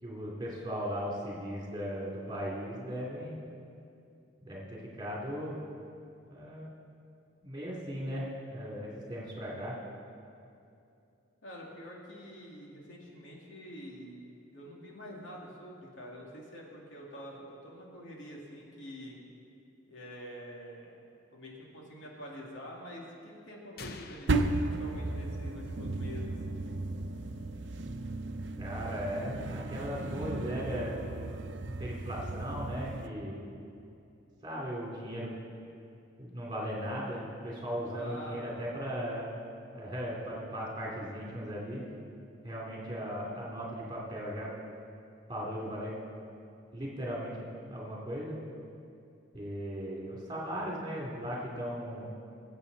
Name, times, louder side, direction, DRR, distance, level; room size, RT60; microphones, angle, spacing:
voice 1, 0.0-3.4 4.4-5.6 6.2-6.7 7.4-9.8 28.6-31.0 31.7-33.4 34.4-35.3 36.2-39.4 39.7-42.0 42.4-44.5 45.3-45.9 46.7-48.4 49.3-52.1, equal, 25° right, -5 dB, 2.9 m, -37 dB
voice 2, 11.4-14.2 14.5-19.2 19.9-21.0 21.3-26.4 37.8-38.5, equal, 80° left, -3 dB, 2.4 m, -46 dB
sound 1, 23.8-25.7, left 3 dB, 50° left, 0.6 m, -48 dB
sound 2, 24.3-33.1, right 2 dB, 70° right, 0.6 m, -35 dB
22.0 x 8.0 x 4.1 m, 2.6 s
head